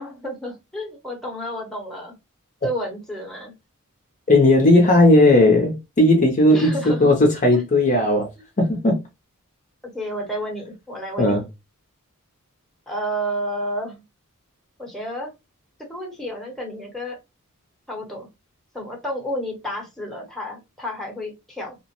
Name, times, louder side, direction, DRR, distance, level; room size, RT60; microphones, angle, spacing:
voice 1, 0.0-2.1 2.6-3.5 6.5-7.1 7.5-7.6 9.9-11.4 12.9-14.0 14.8-15.3 15.9-17.2 17.9-18.3 18.7-21.8, equal, ahead, 0.9 m, -31 dB
voice 2, 4.3-8.3 8.6-9.0 11.2-11.4, left 1 dB, 35° left, 0.6 m, -16 dB
2.9 x 2.0 x 2.9 m
head